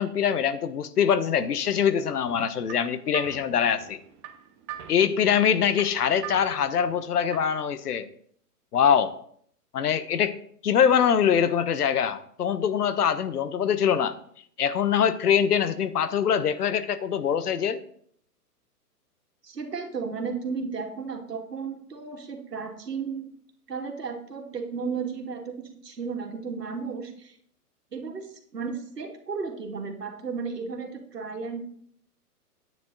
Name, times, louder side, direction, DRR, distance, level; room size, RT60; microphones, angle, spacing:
voice 1, 0.0-4.0 4.9-8.1 8.7-9.1 9.7-10.4 10.6-14.1 14.6-17.8, left 8 dB, 70° left, 13 dB, 1.1 m, -23 dB
sound 1, 2.3-7.7, right 10 dB, 20° right, 0.6 m, -43 dB
voice 2, 19.4-23.3 23.7-27.4 27.9-31.6, right 5 dB, 85° right, 2 dB, 2.3 m, -34 dB
9.7 x 9.5 x 3.9 m, 0.63 s
hypercardioid pair, 130°, 47 cm